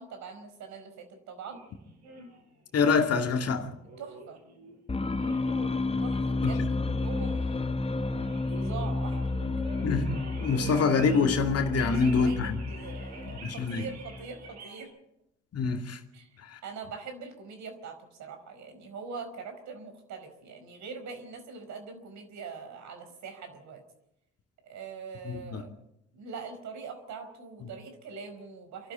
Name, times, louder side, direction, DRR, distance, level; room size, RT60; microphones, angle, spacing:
voice 1, 0.0-1.6 4.0-4.4 6.0-9.2 11.8-14.9 16.1-16.3 16.6-23.8 24.6-25.8 26.1-28.9, right 5 dB, 60° right, 4.9 m, -43 dB
sound 1, 1.5-2.4 3.1-4.8 5.1-5.8 6.1-6.7 6.9-7.8 8.1-14.8, right 2 dB, 90° right, 4.8 m, -47 dB
voice 2, 2.7-3.7 9.8-12.6 13.4-13.8 15.5-16.0 16.4-16.6 25.3-25.6, left 4 dB, 50° left, 2.5 m, -26 dB
sound 2, 4.9-14.5, left 3 dB, 20° left, 1.1 m, -31 dB
27.5 x 12.0 x 9.0 m
hypercardioid pair, 55°, 32 cm